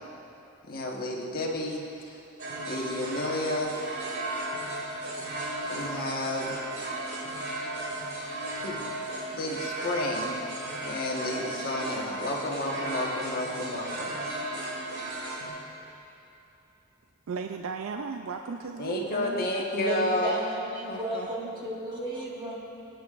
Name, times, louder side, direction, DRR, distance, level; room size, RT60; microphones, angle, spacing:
voice 1, 0.7-2.2 2.7-3.8 5.7-6.6 8.6-8.9 9.3-10.4 10.8-14.2 18.8-20.3 20.9-21.3, left 1 dB, 45° left, -2 dB, 1.3 m, -31 dB
sound 1, 2.4-15.5, right 2 dB, 55° right, 2.4 m, -35 dB
voice 2, 17.3-19.5 20.7-20.8, right 5 dB, 75° right, 5 dB, 0.4 m, -35 dB
voice 3, 19.7-22.5, right 1 dB, 20° right, -4 dB, 1.6 m, -33 dB
21.0 x 9.1 x 2.5 m, 2.8 s
head